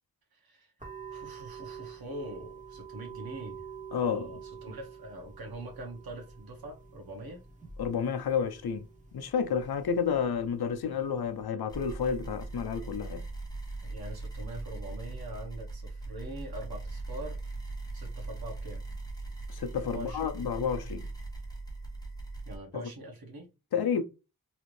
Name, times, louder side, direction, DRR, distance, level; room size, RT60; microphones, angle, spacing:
voice 1, 0.3-0.7 1.1-3.7 4.0-7.4 13.8-17.4 17.9-18.8 19.8-20.4 22.5-23.5, right 1 dB, 75° right, 1.1 m, -43 dB
sound 1, 0.8-11.4, right 6 dB, 20° right, 1.3 m, -47 dB
voice 2, 3.9-4.3 7.8-8.9 9.1-13.2 19.5-21.1 22.7-22.8 23.7-24.0, left 7 dB, 85° left, 0.6 m, -30 dB
sound 2, 11.7-22.6, right 2 dB, 10° left, 1.1 m, -40 dB
3.2 x 2.5 x 3.1 m
wide cardioid pair, 95°, 37 cm